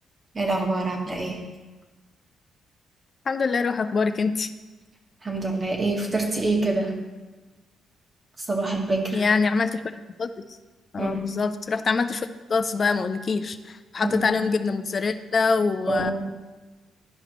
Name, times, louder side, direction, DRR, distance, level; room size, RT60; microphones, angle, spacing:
voice 1, 0.3-1.4 5.2-6.9 8.4-9.2 11.0-11.2 14.0-14.2 15.9-16.1, right 2 dB, 30° right, 1 dB, 1.5 m, -26 dB
voice 2, 3.3-4.5 9.1-9.8 10.2-10.3 10.9-16.1, left 4 dB, 40° left, 11 dB, 0.5 m, -24 dB
12.0 x 4.9 x 3.0 m, 1.2 s
cardioid pair, 90°, 0 cm